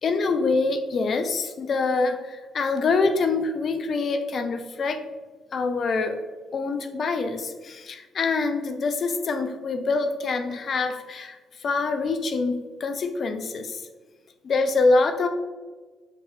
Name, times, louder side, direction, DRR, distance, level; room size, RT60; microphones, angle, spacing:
voice 1, 0.0-5.0 5.5-6.2 6.5-13.9 14.4-15.3, left 3 dB, 55° left, 7 dB, 0.4 m, -25 dB
5.9 x 2.8 x 2.3 m, 1.3 s
hypercardioid pair, 50°, 0 cm